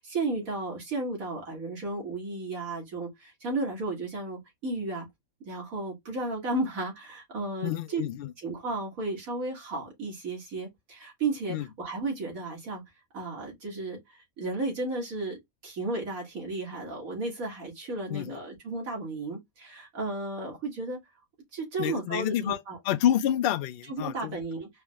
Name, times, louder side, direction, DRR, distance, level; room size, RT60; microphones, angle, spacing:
voice 1, 0.0-5.1 5.4-8.0 8.4-12.8 13.1-21.0 21.5-22.8 23.9-24.7, right 2 dB, 80° right, 2.1 m, -34 dB
voice 2, 7.6-8.3 11.5-11.7 18.1-18.4 21.8-24.4, left 11 dB, 70° left, 0.5 m, -28 dB
4.6 x 2.1 x 3.4 m
omnidirectional pair, 1.5 m